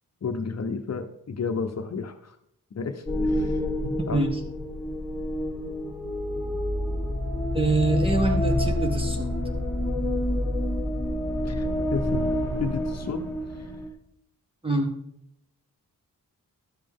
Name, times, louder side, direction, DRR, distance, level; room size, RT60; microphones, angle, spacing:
voice 1, 0.2-2.3 2.7-3.6 4.1-4.2 11.4-12.3 12.6-13.2, left 5 dB, 50° left, 6 dB, 0.9 m, -32 dB
sound 1, 3.1-13.9, left 1 dB, 5° left, 2.3 m, -28 dB
voice 2, 7.5-9.3 14.6-14.9, right 2 dB, 15° right, 4 dB, 1.5 m, -25 dB
12.5 x 7.5 x 3.7 m, 0.76 s
wide cardioid pair, 105°, 34 cm